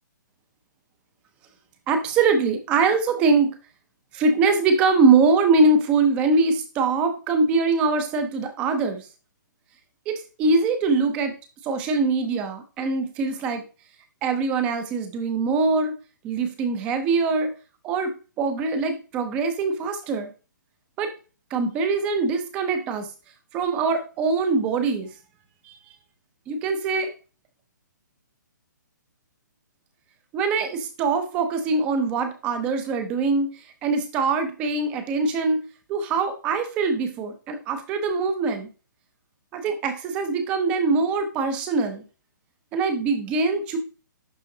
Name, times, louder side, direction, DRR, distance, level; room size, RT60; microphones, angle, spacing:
voice 1, 1.9-3.5 4.1-9.1 10.1-11.3 11.6-13.6 14.2-15.9 16.2-17.5 17.8-20.3 21.0-21.1 21.5-23.1 23.5-25.1 25.6-25.8 26.5-27.1 30.3-35.6 35.9-38.7 39.5-42.0 42.7-43.8, right 4 dB, 10° right, 8 dB, 0.6 m, -23 dB
11.0 x 3.7 x 2.7 m, 0.34 s
hypercardioid pair, 175°, 11 cm